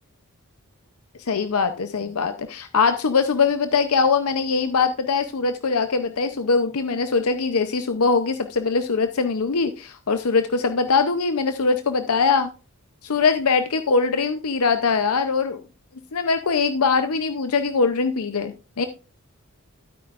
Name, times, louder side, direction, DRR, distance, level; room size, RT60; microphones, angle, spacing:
voice 1, 1.2-12.5 13.0-15.6 16.1-18.9, left 4 dB, 85° left, 8 dB, 0.7 m, -22 dB
13.0 x 8.7 x 2.5 m, 0.32 s
head